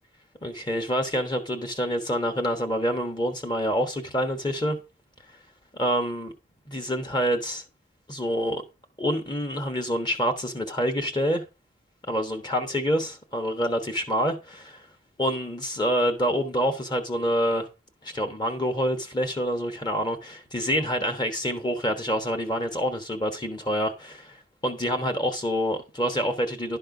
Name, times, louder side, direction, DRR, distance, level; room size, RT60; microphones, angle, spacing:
voice 1, 0.4-4.8 5.8-6.3 6.7-7.6 8.1-8.6 9.0-11.4 12.1-14.8 15.2-17.7 18.0-26.8, equal, 20° left, 1.2 m, -27 dB
11.5 x 4.3 x 5.3 m
head